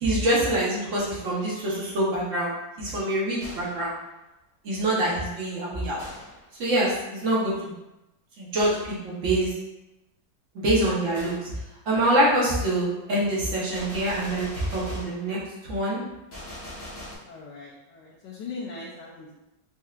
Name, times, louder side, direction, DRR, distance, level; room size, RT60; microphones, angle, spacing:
voice 1, 0.0-3.9 4.6-6.0 6.6-7.7 8.4-9.5 10.5-11.5 11.9-15.4 15.7-16.0, right 1 dB, 50° right, -6 dB, 1.2 m, -25 dB
Gunshot gunfire, 0.9-1.5 3.4-3.9 6.0-6.5 8.6-9.0 11.1-11.5 13.7-15.3 16.3-17.2, left 1 dB, 35° left, 0.8 m, -41 dB
voice 2, 12.9-13.4 17.2-19.3, left 4 dB, 75° left, -5 dB, 1.3 m, -40 dB
4.4 x 2.7 x 2.4 m, 0.96 s
omnidirectional pair, 1.9 m